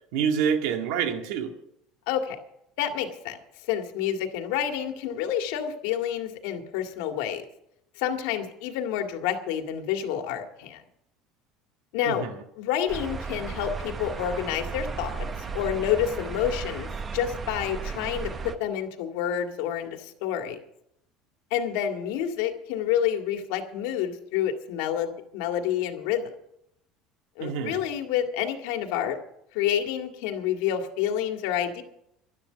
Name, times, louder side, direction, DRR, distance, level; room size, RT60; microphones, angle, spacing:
voice 1, 0.1-1.5 12.0-12.3 27.4-27.8, right 7 dB, 75° right, 5 dB, 2.0 m, -27 dB
voice 2, 2.1-2.4 2.8-3.4 3.7-7.4 8.0-10.8 11.9-12.2 12.6-15.3 15.5-20.6 21.5-26.3 27.4-29.2 29.5-31.8, left 9 dB, 80° left, 5 dB, 2.0 m, -28 dB
sound 1, 12.9-18.5, right 5 dB, 25° right, 0.9 m, -35 dB
12.0 x 12.0 x 6.8 m, 0.77 s
cardioid pair, 145°, 0 cm